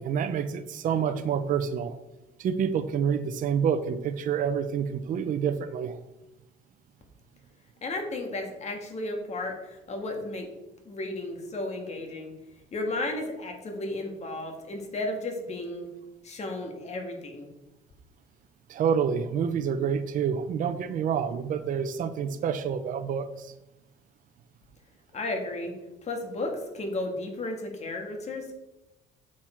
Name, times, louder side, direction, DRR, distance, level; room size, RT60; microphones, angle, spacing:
voice 1, 0.0-2.0 2.4-6.0 18.7-23.5, right 7 dB, 50° right, 9 dB, 0.6 m, -28 dB
voice 2, 7.8-10.5 10.9-12.3 12.7-15.9 16.2-17.5 25.1-25.7 26.0-28.5, left 2 dB, 40° left, 3 dB, 1.9 m, -33 dB
7.3 x 6.6 x 4.4 m, 0.98 s
cardioid pair, 110°, 17 cm